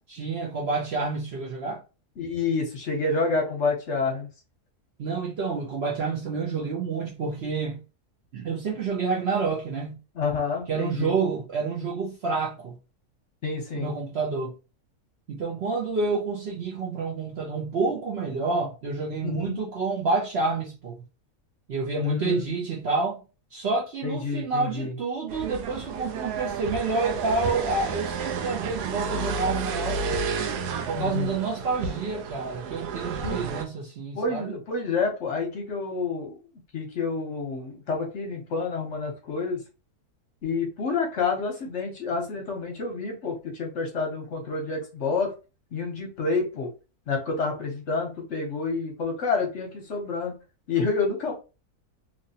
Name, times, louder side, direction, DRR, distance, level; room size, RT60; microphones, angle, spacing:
voice 1, 0.1-1.8 5.0-7.8 8.3-10.0 10.7-12.8 13.7-14.5 15.3-21.0 21.7-23.2 23.5-30.2 30.9-34.5, right 4 dB, 60° right, 0.7 m, -28 dB
voice 2, 2.2-4.3 10.2-11.1 13.4-13.9 19.2-19.6 22.0-22.5 24.0-24.9 30.9-31.3 33.2-33.5 34.1-36.4 36.7-39.6 40.4-45.3 45.7-46.7 47.1-50.3 50.7-51.3, left 4 dB, 60° left, 0.9 m, -28 dB
sound 1, 25.3-33.6, right 5 dB, 85° right, 1.1 m, -31 dB
2.9 x 2.6 x 2.7 m
omnidirectional pair, 1.6 m